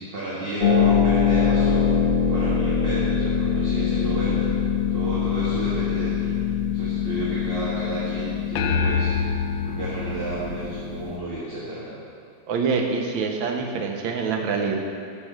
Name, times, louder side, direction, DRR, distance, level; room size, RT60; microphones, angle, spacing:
voice 1, 0.0-1.9 2.3-4.4 4.9-6.3 6.7-9.1 9.6-11.9, right 1 dB, 30° right, -9 dB, 1.6 m, -32 dB
Harp, 0.6-11.2, left 7 dB, 30° left, 1.3 m, -23 dB
sound 1, 8.6-11.2, left 5 dB, 75° left, 1.2 m, -26 dB
voice 2, 12.5-14.8, right 5 dB, 90° right, 2 dB, 1.6 m, -25 dB
6.7 x 6.2 x 7.4 m, 2.4 s
omnidirectional pair, 2.1 m